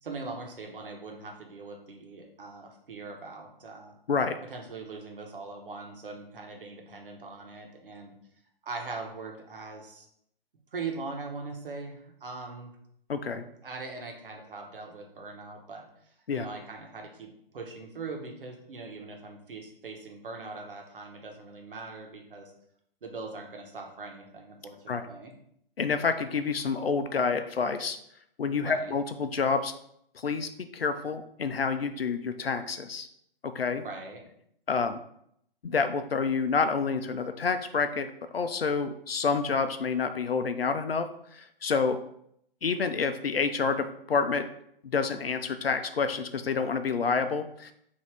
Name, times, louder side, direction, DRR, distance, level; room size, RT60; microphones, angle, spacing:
voice 1, 0.0-3.9 4.4-8.1 8.6-10.1 10.7-12.7 13.6-15.9 16.3-22.5 23.0-25.3 28.6-28.9 33.8-34.3, right 3 dB, 65° right, 2 dB, 1.0 m, -41 dB
voice 2, 13.1-13.4 16.3-16.5 24.9-25.0 25.8-28.0 28.4-29.7 30.2-33.1 33.5-33.8 34.7-35.0 35.6-41.1 41.3-42.0 42.6-44.5 44.8-47.7, left 5 dB, 85° left, 9 dB, 0.5 m, -28 dB
4.7 x 2.7 x 3.4 m, 0.72 s
figure-of-eight pair, 130°, 29 cm